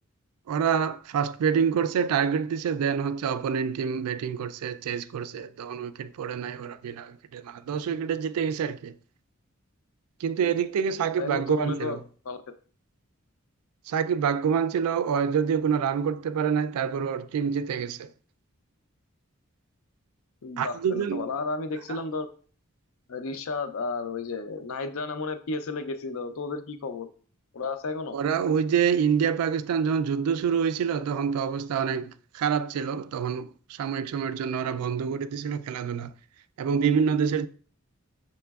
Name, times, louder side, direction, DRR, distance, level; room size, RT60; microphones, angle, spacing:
voice 1, 0.5-8.9 10.2-12.0 13.9-18.1 20.6-21.3 21.9-22.0 28.1-36.1 36.6-37.5, right 7 dB, 85° right, 0.3 m, -27 dB
voice 2, 11.2-12.0 12.2-12.4 20.4-22.3 23.1-27.1 27.5-28.2, left 3 dB, 70° left, 0.5 m, -32 dB
5.9 x 3.1 x 2.3 m
head